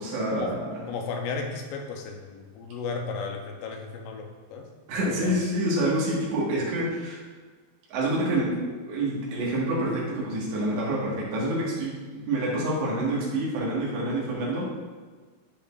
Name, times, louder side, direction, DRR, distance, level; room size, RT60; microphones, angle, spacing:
voice 1, 0.0-0.8 4.9-7.2 7.9-14.7, right 1 dB, 65° right, -6 dB, 3.7 m, -27 dB
voice 2, 0.9-4.7 4.9-5.4 6.8-6.9, left 4 dB, 85° left, 3 dB, 3.2 m, -35 dB
13.5 x 5.2 x 2.6 m, 1.4 s
omnidirectional pair, 5.8 m